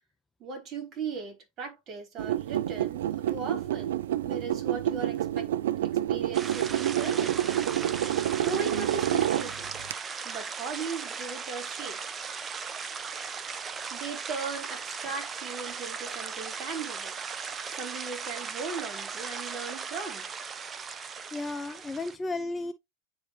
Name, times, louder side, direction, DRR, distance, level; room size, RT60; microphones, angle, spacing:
voice 1, 0.4-5.5 5.8-7.5 8.0-9.7 10.2-12.0 13.9-17.2 17.7-20.3, right 4 dB, 40° right, 3.9 m, -38 dB
sound 1, 2.2-9.9, right 12 dB, 75° right, 0.4 m, -28 dB
sound 2, 6.3-22.2, right 5 dB, 25° right, 0.6 m, -37 dB
voice 2, 21.3-22.7, left 2 dB, 20° left, 0.7 m, -33 dB
9.7 x 3.3 x 3.0 m
hypercardioid pair, 95°, 0 cm